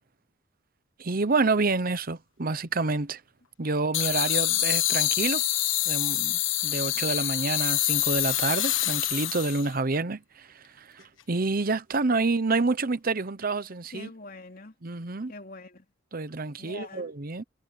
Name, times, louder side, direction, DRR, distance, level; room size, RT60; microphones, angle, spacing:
voice 1, 1.0-3.2 3.6-5.4 5.9-14.1 14.8-15.3 16.1-17.4, right 3 dB, 50° right, 0.9 m, -28 dB
sound 1, 3.9-9.7, left 14 dB, 85° left, 1.3 m, -26 dB
voice 2, 13.9-14.7 15.3-15.9 16.6-17.1, left 2 dB, 50° left, 3.2 m, -44 dB
head